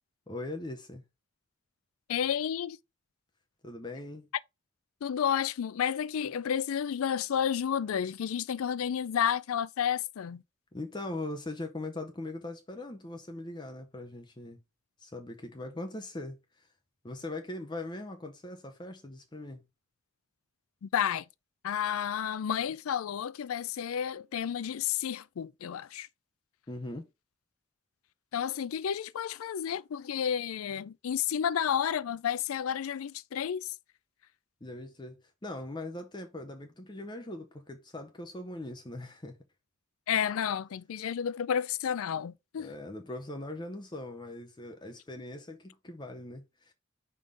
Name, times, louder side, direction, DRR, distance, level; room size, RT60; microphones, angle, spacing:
voice 1, 0.3-1.0 3.6-4.3 10.7-14.6 15.0-16.7 17.0-19.6 26.7-27.1 34.6-39.4 42.6-46.7, left 2 dB, 20° left, 0.6 m, -40 dB
voice 2, 2.1-2.8 5.0-10.4 20.8-21.2 21.6-26.1 28.3-33.7 40.1-42.7, left 8 dB, 80° left, 0.4 m, -31 dB
5.4 x 3.6 x 4.9 m
head